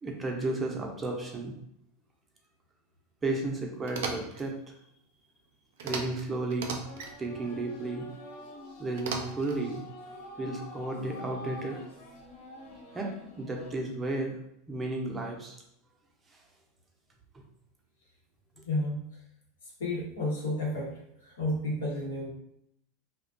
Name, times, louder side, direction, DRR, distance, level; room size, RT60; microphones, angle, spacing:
voice 1, 0.0-1.5 3.2-4.5 5.8-6.8 7.2-8.1 8.8-9.8 10.4-11.8 12.9-13.1 13.4-14.4 14.7-15.6, right 2 dB, 20° right, 0 dB, 0.6 m, -33 dB
sound 1, 3.9-4.4 5.8-6.2 6.5-7.1 9.0-9.6, right 4 dB, 75° right, 0.4 m, -36 dB
sound 2, 6.8-13.7, left 1 dB, 60° left, 0.6 m, -46 dB
voice 2, 18.6-19.0 19.8-20.9 21.4-22.3, left 1 dB, 80° left, -4 dB, 0.9 m, -31 dB
2.4 x 2.1 x 2.5 m, 0.75 s
hypercardioid pair, 95°, 0 cm